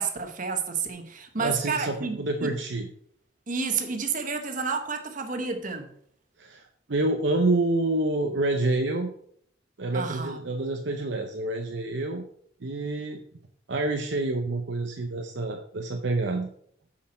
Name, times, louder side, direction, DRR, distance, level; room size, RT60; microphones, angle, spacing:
voice 1, 0.0-2.5 3.5-5.9 9.9-10.4, right 5 dB, 40° right, 1.2 m, -30 dB
voice 2, 1.4-2.9 6.4-9.1 9.8-12.2 12.6-13.2 13.7-16.5, right 2 dB, 60° right, 0.7 m, -28 dB
8.6 x 5.8 x 4.3 m
head